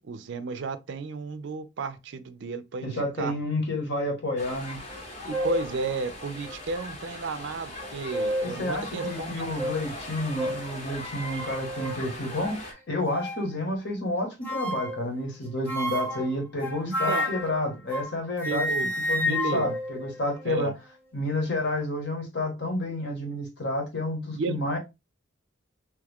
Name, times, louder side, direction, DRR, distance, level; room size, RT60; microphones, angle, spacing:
voice 1, 0.0-3.3 5.2-9.4 16.9-17.3 18.5-18.9 19.2-19.7 20.5-20.7 24.3-24.6, right 3 dB, 60° right, 0.4 m, -33 dB
voice 2, 2.8-4.8 8.4-20.7 21.1-24.8, left 1 dB, 60° left, 1.2 m, -30 dB
sound 1, 4.4-12.7, left 1 dB, 35° left, 0.9 m, -39 dB
sound 2, 4.9-5.0 5.3-5.7 6.4-6.5 7.8-8.6 9.0-9.1 9.6-9.8 10.4-10.6 11.3-12.0 13.0-13.5 14.4-15.0 15.7-18.1 18.4-20.7, left 1 dB, 10° left, 0.9 m, -31 dB
3.0 x 2.3 x 3.4 m
head